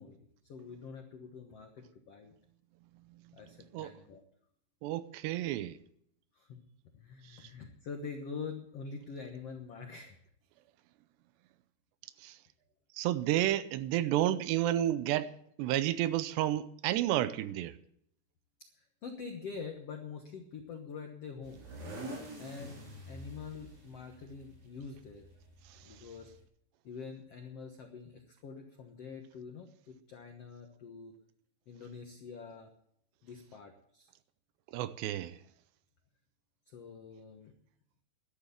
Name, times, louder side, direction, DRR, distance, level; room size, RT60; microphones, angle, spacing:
voice 1, 0.0-2.3 3.3-4.2 6.3-6.6 6.9-10.2 18.6-21.7 22.4-25.3 25.8-26.3 26.8-31.1 31.7-32.7 33.2-34.1 36.7-37.5, left 5 dB, 85° left, 1.3 m, -45 dB
voice 2, 4.8-5.8 7.3-7.5 12.2-12.4 13.0-15.3 15.6-17.8 25.7-25.8 34.7-35.4, right 13 dB, 80° right, 2.8 m, -31 dB
sound 1, 21.4-26.4, right 1 dB, 65° right, 6.3 m, -47 dB
12.5 x 12.0 x 7.1 m
omnidirectional pair, 5.0 m